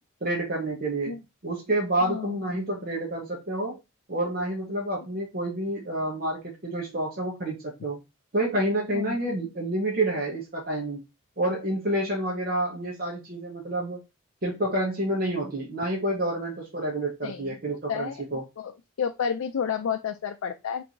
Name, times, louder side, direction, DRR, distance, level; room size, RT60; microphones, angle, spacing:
voice 1, 0.2-1.1 1.4-3.8 4.1-8.0 8.3-11.0 11.4-14.0 14.4-18.4, right 1 dB, 45° right, -3 dB, 1.1 m, -28 dB
voice 2, 2.1-2.4 8.9-9.2 17.2-17.6 17.9-18.7 19.0-20.8, left 7 dB, 90° left, 6 dB, 0.4 m, -31 dB
3.4 x 2.7 x 4.5 m, 0.24 s
head